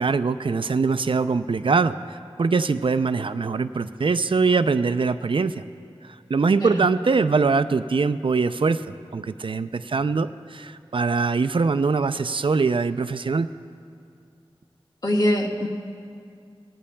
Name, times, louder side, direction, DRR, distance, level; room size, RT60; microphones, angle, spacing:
voice 1, 0.0-5.6 6.0-13.5, right 4 dB, 60° right, 12 dB, 0.4 m, -23 dB
voice 2, 15.0-15.7, left 1 dB, 45° left, 0 dB, 1.6 m, -23 dB
20.0 x 15.5 x 2.2 m, 2.3 s
wide cardioid pair, 45°, 10 cm